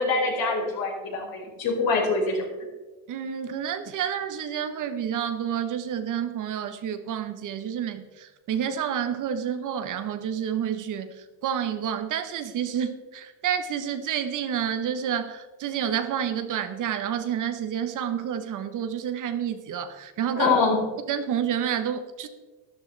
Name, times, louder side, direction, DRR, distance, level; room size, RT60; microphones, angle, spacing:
voice 1, 0.0-2.4 20.4-20.8, left 3 dB, 55° left, -1 dB, 4.5 m, -24 dB
voice 2, 3.1-20.5 21.1-22.3, right 8 dB, 45° right, 9 dB, 1.0 m, -29 dB
12.5 x 12.0 x 3.3 m, 1.2 s
cardioid pair, 125°, 42 cm